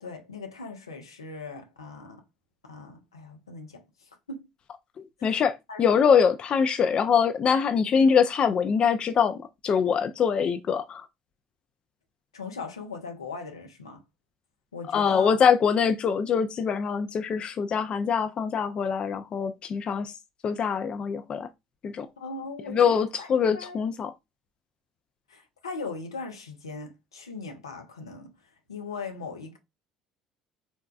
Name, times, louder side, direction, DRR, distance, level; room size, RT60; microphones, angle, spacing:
voice 1, 0.0-2.2 2.6-4.5 5.2-5.4 5.7-5.9 12.3-14.0 14.7-15.3 22.2-23.8 25.3-28.3 28.7-29.6, left 4 dB, 90° left, 0.6 m, -39 dB
voice 2, 5.0-5.5 5.8-11.0 14.9-20.1 20.4-21.5 21.8-22.1 22.7-24.1, left 6 dB, 40° left, 0.4 m, -23 dB
4.1 x 2.2 x 2.3 m
hypercardioid pair, 65°, 3 cm